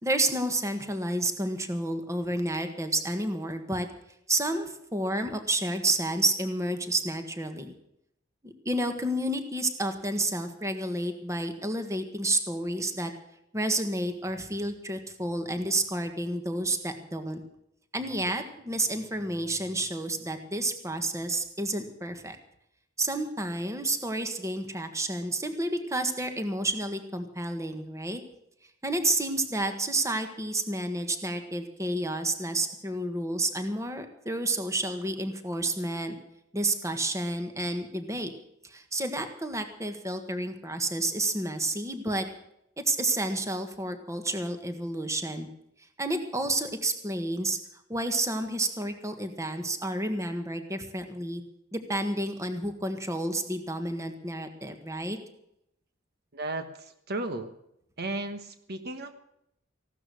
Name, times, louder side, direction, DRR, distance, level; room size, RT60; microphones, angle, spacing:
voice 1, 0.0-3.9 4.3-7.7 8.4-13.1 13.5-17.4 17.9-22.4 23.0-28.2 28.8-36.1 36.5-38.3 38.6-42.3 42.8-45.5 46.0-47.6 47.9-51.4 51.7-55.2, right 2 dB, 15° right, 7 dB, 1.6 m, -30 dB
voice 2, 56.3-57.5 58.0-59.1, right 2 dB, 55° right, 8 dB, 1.3 m, -34 dB
16.0 x 12.5 x 6.4 m, 0.77 s
head